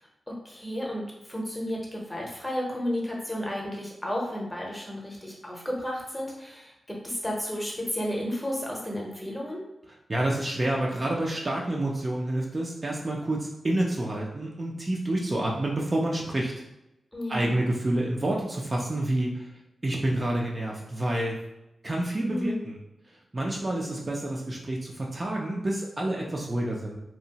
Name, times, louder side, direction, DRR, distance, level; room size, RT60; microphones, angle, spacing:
voice 1, 0.3-6.7 7.0-9.6 17.1-17.6 22.2-22.6, equal, 10° left, -2 dB, 0.7 m, -32 dB
voice 2, 10.1-16.5 17.3-19.5 19.8-21.4 21.8-22.8 23.3-27.0, right 1 dB, 30° right, -2 dB, 0.4 m, -28 dB
2.7 x 2.0 x 2.8 m, 0.91 s
wide cardioid pair, 85°, 0 cm